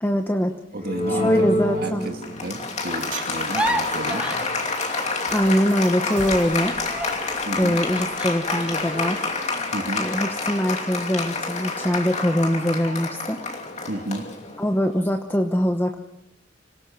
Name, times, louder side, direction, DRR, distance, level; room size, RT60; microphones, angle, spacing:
voice 1, 0.0-0.5 1.1-2.1 5.3-6.8 7.6-9.3 10.0-13.4 14.6-16.0, equal, 10° left, 5 dB, 1.0 m, -23 dB
voice 2, 0.7-4.4 7.5-7.8 9.7-10.1 13.9-14.3, right 2 dB, 55° right, 4 dB, 1.8 m, -31 dB
Applause, 0.8-14.9, left 3 dB, 40° left, 2.7 m, -28 dB
sound 1, 3.0-9.4, right 5 dB, 90° right, 3.3 m, -44 dB
sound 2, 3.3-5.8 6.1-10.5 10.9-11.1 11.5-12.0, equal, 5° right, 1.4 m, -33 dB
26.0 x 18.0 x 5.6 m, 0.82 s
head